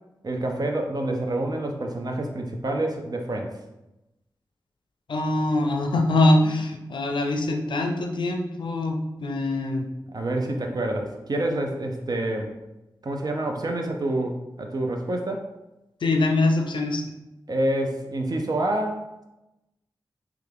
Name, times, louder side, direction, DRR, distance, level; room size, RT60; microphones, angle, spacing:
voice 1, 0.2-3.6 10.1-12.5 13.0-15.4 17.5-19.0, right 1 dB, 55° right, 3 dB, 0.6 m, -27 dB
voice 2, 5.1-9.9 16.0-17.0, left 2 dB, 80° left, 3 dB, 0.5 m, -23 dB
3.3 x 2.4 x 3.3 m, 0.95 s
cardioid pair, 50°, 8 cm